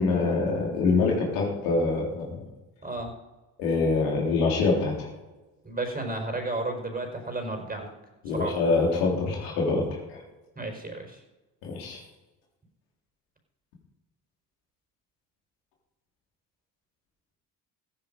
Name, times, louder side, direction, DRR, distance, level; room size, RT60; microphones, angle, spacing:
voice 1, 0.0-2.3 3.6-5.1 8.2-10.2 11.6-12.0, left 3 dB, 80° left, 0 dB, 3.7 m, -25 dB
voice 2, 5.6-7.9 8.3-8.5 10.6-11.2, right 2 dB, 20° right, 3 dB, 4.6 m, -32 dB
15.0 x 9.0 x 5.3 m, 1.1 s
hypercardioid pair, 55°, 46 cm